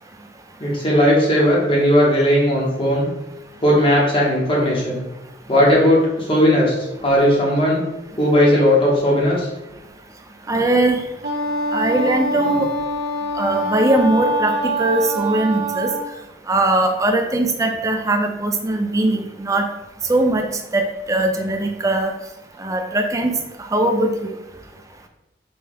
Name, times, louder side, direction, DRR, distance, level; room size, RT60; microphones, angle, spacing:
voice 1, 0.6-3.1 3.6-5.0 5.5-6.7 7.0-7.8 8.2-9.5, equal, 30° left, -4 dB, 0.9 m, -16 dB
voice 2, 10.5-11.0 11.7-12.7 13.4-15.9 16.5-19.7 20.1-20.5 20.7-20.8 21.1-22.1 22.6-23.3 23.7-24.1, right 2 dB, 20° right, 4 dB, 0.4 m, -20 dB
Wind instrument woodwind instrument, 11.2-16.1, right 1 dB, 65° right, 0.8 m, -24 dB
5.2 x 2.2 x 3.5 m, 0.97 s
head